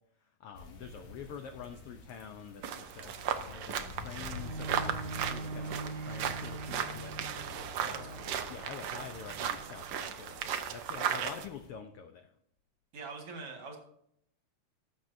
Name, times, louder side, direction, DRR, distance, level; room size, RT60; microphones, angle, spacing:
voice 1, 0.4-7.1 7.8-8.1 8.5-12.3, left 7 dB, 80° left, 7 dB, 1.3 m, -47 dB
sound 1, 0.5-11.7, left 3 dB, 60° left, 2.8 m, -49 dB
sound 2, 2.6-11.5, right 9 dB, 75° right, 1.2 m, -36 dB
Bowed string instrument, 4.3-9.9 10.6-10.7, right 3 dB, 10° right, 2.6 m, -43 dB
voice 2, 7.8-8.4 11.0-11.2 12.9-13.8, right 4 dB, 50° right, 2 dB, 2.6 m, -44 dB
19.0 x 7.7 x 2.7 m, 0.72 s
omnidirectional pair, 3.5 m